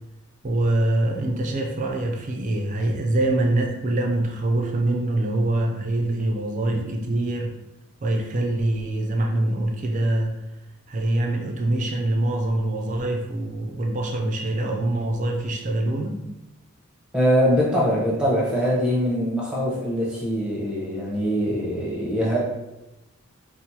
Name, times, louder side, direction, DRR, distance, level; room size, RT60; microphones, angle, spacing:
voice 1, 0.4-7.5 8.0-10.3 10.9-16.2, right 1 dB, 35° right, 2 dB, 0.4 m, -24 dB
voice 2, 17.1-22.4, equal, 5° right, -6 dB, 0.7 m, -23 dB
4.4 x 2.0 x 2.7 m, 0.96 s
head